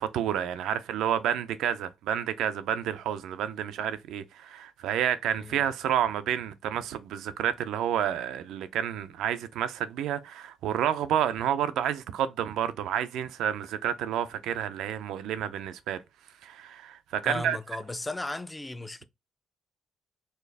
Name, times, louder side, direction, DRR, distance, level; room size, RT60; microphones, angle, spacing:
voice 1, 0.0-16.0 16.4-17.6, right 10 dB, 85° right, 0.5 m, -30 dB
voice 2, 5.3-5.7 17.2-19.0, left 2 dB, 15° left, 0.4 m, -36 dB
4.3 x 2.4 x 3.4 m
cardioid pair, 90°, 0 cm